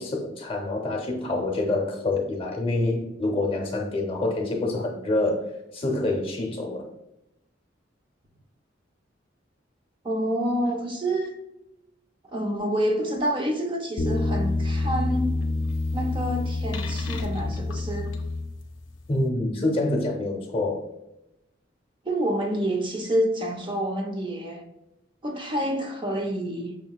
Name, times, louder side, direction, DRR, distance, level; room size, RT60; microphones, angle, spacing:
voice 1, 0.0-6.9 19.1-20.9, left 2 dB, 30° left, 0.7 m, -26 dB
voice 2, 10.0-11.4 12.3-15.4 15.9-18.1 22.0-24.6 25.2-26.8, right 1 dB, 25° right, 0.5 m, -28 dB
sound 1, 14.0-18.9, left 2 dB, 80° left, 0.5 m, -27 dB
5.7 x 2.7 x 2.3 m
head